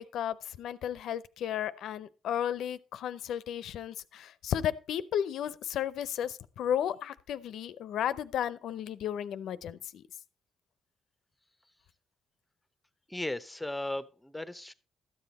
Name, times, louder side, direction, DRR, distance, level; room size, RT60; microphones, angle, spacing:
voice 1, 0.0-10.0, left 10 dB, 75° left, 0.6 m, -34 dB
voice 2, 13.1-14.7, left 1 dB, 5° left, 0.8 m, -36 dB
13.0 x 7.8 x 4.2 m
cardioid pair, 90°, 0 cm